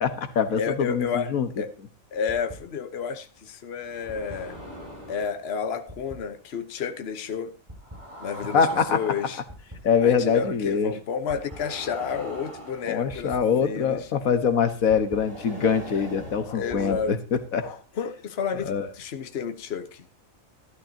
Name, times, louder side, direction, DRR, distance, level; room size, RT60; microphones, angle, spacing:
voice 1, 0.0-1.5 8.5-9.0 9.8-10.9 12.8-17.8 18.6-18.9, left 6 dB, 85° left, 1.6 m, -24 dB
voice 2, 0.5-1.7 2.1-4.6 5.1-7.5 8.2-9.4 10.0-14.1 16.5-17.1 17.9-20.1, left 6 dB, 50° left, 1.2 m, -31 dB
sound 1, 2.3-2.5 3.8-5.4 5.9-6.1 7.7-9.7 11.3-13.4 14.9-17.0, equal, 20° right, 7.2 m, -41 dB
13.0 x 12.0 x 2.8 m
omnidirectional pair, 1.4 m